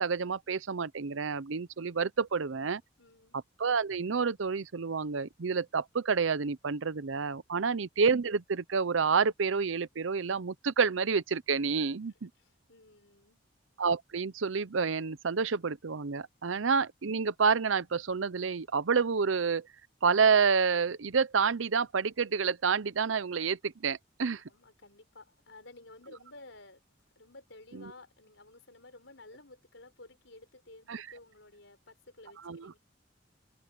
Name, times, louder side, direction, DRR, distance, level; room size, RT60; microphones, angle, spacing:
voice 1, 0.0-2.8 3.6-12.3 13.8-19.7 20.0-24.4 27.7-27.9 30.9-31.1 32.4-32.7, right 5 dB, 80° right, 0.7 m, -29 dB
voice 2, 3.0-3.4 12.4-13.4 24.4-26.8 27.1-32.8, left 2 dB, 75° left, 5.0 m, -54 dB
head